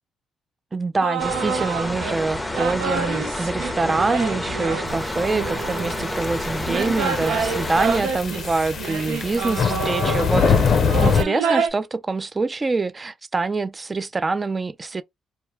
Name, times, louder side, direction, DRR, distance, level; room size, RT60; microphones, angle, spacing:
voice 1, 0.7-15.0, right 3 dB, 25° right, 0.3 m, -25 dB
sound 1, 1.0-2.2 2.5-6.1 6.7-11.7, right 6 dB, 90° right, 0.6 m, -28 dB
sound 2, 1.2-8.0, left 1 dB, 5° left, 0.7 m, -29 dB
sound 3, 5.1-11.2, left 6 dB, 55° left, 0.5 m, -24 dB
2.3 x 2.2 x 3.1 m
cardioid pair, 90°, 0 cm